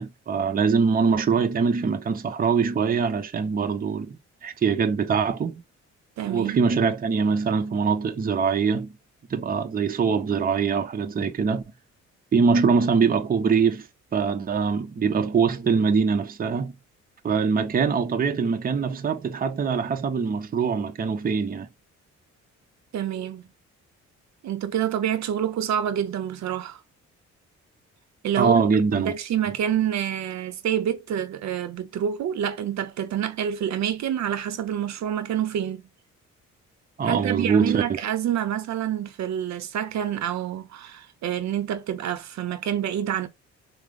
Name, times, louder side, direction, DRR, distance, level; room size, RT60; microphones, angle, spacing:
voice 1, 0.0-5.6 6.2-8.9 9.3-11.6 12.3-13.9 14.1-16.7 17.2-21.7 28.4-29.1 37.0-37.8, right 5 dB, 30° right, 0.7 m, -23 dB
voice 2, 6.2-6.6 22.9-23.5 24.4-26.8 28.2-28.6 28.9-35.9 37.0-43.3, right 10 dB, 65° right, 0.7 m, -27 dB
4.7 x 2.0 x 2.4 m
cardioid pair, 90°, 30 cm